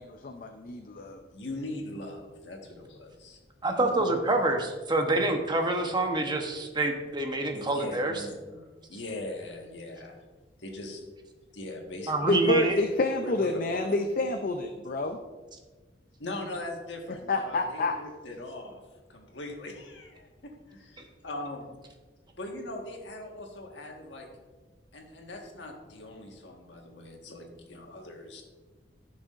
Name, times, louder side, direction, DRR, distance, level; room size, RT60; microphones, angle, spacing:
voice 1, 0.0-1.2 12.3-15.2 17.3-17.9, left 2 dB, 50° left, 5 dB, 0.5 m, -28 dB
voice 2, 1.3-3.4 3.7-4.1 7.5-10.2 10.6-11.0 11.5-12.5 13.2-13.9 16.2-18.8 19.1-21.6 22.4-24.3 24.9-28.4, left 1 dB, 85° left, 1 dB, 1.5 m, -40 dB
voice 3, 3.6-8.1 12.1-12.8, right 2 dB, 25° right, 3 dB, 0.9 m, -27 dB
14.5 x 6.2 x 2.5 m, 1.3 s
head